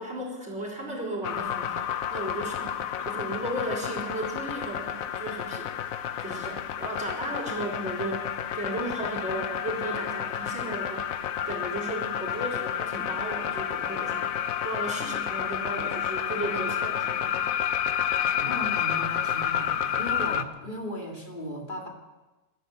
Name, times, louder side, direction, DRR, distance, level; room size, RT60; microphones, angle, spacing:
voice 1, 0.0-5.7 6.2-8.3 8.5-11.2 11.4-14.4 14.6-17.3, right 1 dB, 50° right, -1 dB, 4.2 m, -35 dB
sound 1, 1.2-20.4, left 9 dB, 75° left, 1.2 m, -30 dB
voice 2, 18.2-21.9, equal, 35° left, 0 dB, 2.7 m, -36 dB
14.0 x 12.5 x 8.1 m, 1.1 s
omnidirectional pair, 1.5 m